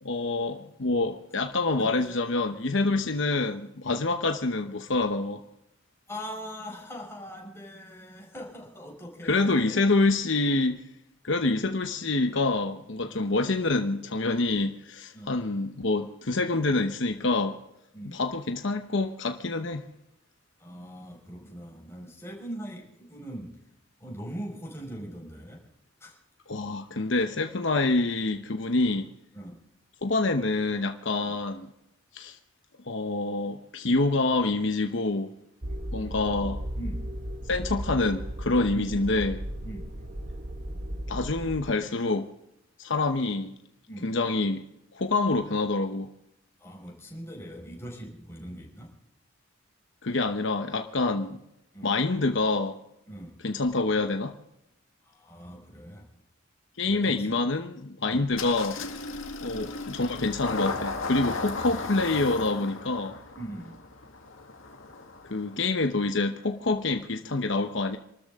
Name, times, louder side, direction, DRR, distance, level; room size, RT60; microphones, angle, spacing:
voice 1, 0.0-5.4 9.3-10.8 11.2-17.6 18.1-19.9 26.5-29.1 30.0-31.7 32.1-32.4 32.8-35.3 35.9-36.6 37.5-39.4 41.1-42.3 42.8-43.5 44.0-44.6 44.9-46.1 50.0-51.4 51.8-52.8 53.4-54.3 56.8-58.8 59.4-63.2 65.3-68.0, left 3 dB, 65° left, 1.0 m, -26 dB
voice 2, 1.8-2.1 3.0-3.1 3.8-4.0 6.1-9.8 13.0-13.3 15.1-15.3 17.9-18.2 20.6-23.6 24.0-25.7 26.0-26.2 29.3-29.6 31.2-31.3 36.0-36.1 36.7-37.0 38.7-39.0 39.6-39.8 43.9-44.1 46.6-48.9 51.7-51.9 53.1-53.3 55.0-56.1 56.8-57.4 58.0-58.4 59.5-59.7 63.3-63.8, equal, 15° left, 5.1 m, -41 dB
sound 1, 35.6-41.6, equal, 50° right, 1.5 m, -35 dB
Engine starting, 58.3-65.7, left 3 dB, 85° left, 2.1 m, -36 dB
27.5 x 13.5 x 3.7 m
head